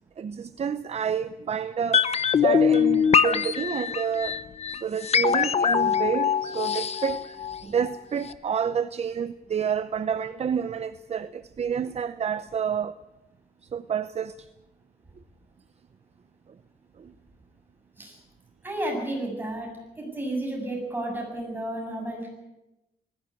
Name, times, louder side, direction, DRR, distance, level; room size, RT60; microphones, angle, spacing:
voice 1, 0.2-4.4 4.7-13.0 13.6-14.5 17.0-17.1, right 7 dB, 40° right, 0.7 m, -29 dB
sound 1, 1.9-8.0 8.2-8.3, left 7 dB, 40° left, 0.9 m, -23 dB
voice 2, 18.6-19.7 20.0-22.3, right 1 dB, 10° right, 7.4 m, -32 dB
19.5 x 16.0 x 9.7 m
wide cardioid pair, 160°, 17 cm